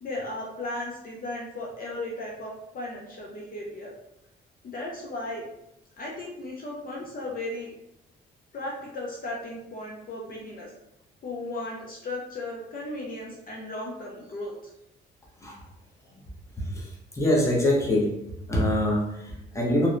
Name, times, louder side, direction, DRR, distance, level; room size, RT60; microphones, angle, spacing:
voice 1, 0.0-3.9 4.6-5.4 6.0-7.7 8.5-10.7 11.2-14.7, left 2 dB, 45° left, -3 dB, 0.5 m, -36 dB
voice 2, 16.6-18.1 18.5-19.9, left 1 dB, 15° left, -3 dB, 0.7 m, -25 dB
2.7 x 2.1 x 2.4 m, 0.85 s
cardioid pair, 90°, 20 cm